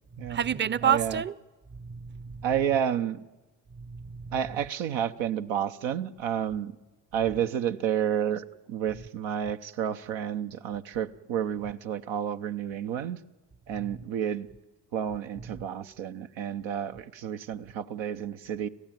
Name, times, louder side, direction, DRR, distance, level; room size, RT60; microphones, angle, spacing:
voice 1, 0.2-1.3 1.7-2.5 3.8-4.3 13.8-13.9, right 8 dB, 25° right, 0.7 m, -29 dB
voice 2, 0.8-1.2 2.4-3.2 4.3-6.8 7.1-13.2 13.7-14.5 14.9-18.7, right 9 dB, 80° right, 0.9 m, -30 dB
27.0 x 15.0 x 9.2 m
hypercardioid pair, 45°, 44 cm